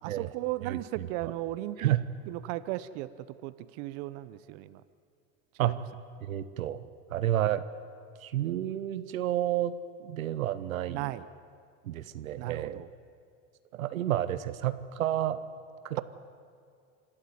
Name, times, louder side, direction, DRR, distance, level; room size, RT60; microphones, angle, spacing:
voice 1, 0.0-1.9 2.3-4.8 5.6-5.7 10.9-11.3 12.4-12.9, right 16 dB, 60° right, 15 dB, 0.9 m, -36 dB
voice 2, 6.2-6.8 7.1-7.6 8.2-9.7 10.0-11.1 11.8-12.8 13.7-15.4 15.8-16.0, right 12 dB, 85° right, 13 dB, 1.0 m, -30 dB
26.5 x 12.5 x 9.4 m, 2.3 s
hypercardioid pair, 95°, 40 cm